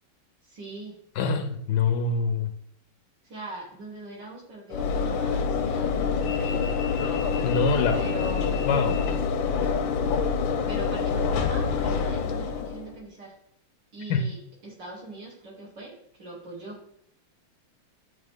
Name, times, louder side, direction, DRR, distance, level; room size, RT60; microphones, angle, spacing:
voice 1, 0.4-0.9 3.3-6.8 7.9-8.7 10.7-13.3 13.9-14.4 14.6-15.9 16.2-16.8, right 2 dB, 60° right, -6 dB, 3.0 m, -41 dB
voice 2, 1.2-2.5 7.4-7.9 8.6-9.0 14.1-14.2, left 4 dB, 75° left, 7 dB, 1.0 m, -24 dB
Train / Engine / Alarm, 4.7-13.0, left 5 dB, 90° left, 1.4 m, -26 dB
8.4 x 3.3 x 3.5 m, 0.69 s
omnidirectional pair, 2.1 m